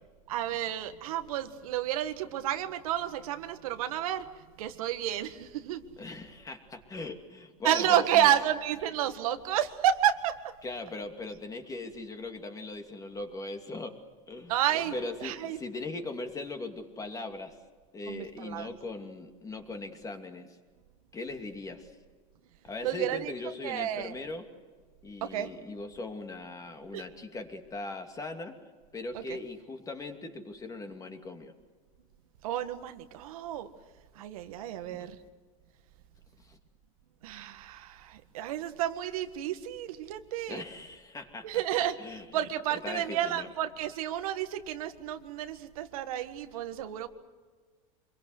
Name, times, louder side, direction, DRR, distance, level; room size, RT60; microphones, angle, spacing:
voice 1, 0.3-4.2 4.6-5.8 7.6-10.3 14.5-14.9 15.2-15.6 18.1-18.7 22.8-23.3 23.6-24.1 25.2-25.5 26.9-27.0 29.3-29.4 32.4-33.7 34.1-35.1 37.2-40.6 41.4-47.1, right 11 dB, 90° right, 8 dB, 1.7 m, -30 dB
voice 2, 6.0-8.3 10.6-14.0 14.3-14.5 14.9-17.6 17.9-20.6 21.1-21.9 22.6-24.5 25.0-28.6 28.9-31.5 34.9-35.1 36.4-36.6 40.5-41.6 42.0-42.4 42.8-43.5, left 2 dB, 20° left, 5 dB, 2.6 m, -40 dB
26.0 x 22.5 x 8.0 m, 1.5 s
supercardioid pair, 130°, 18 cm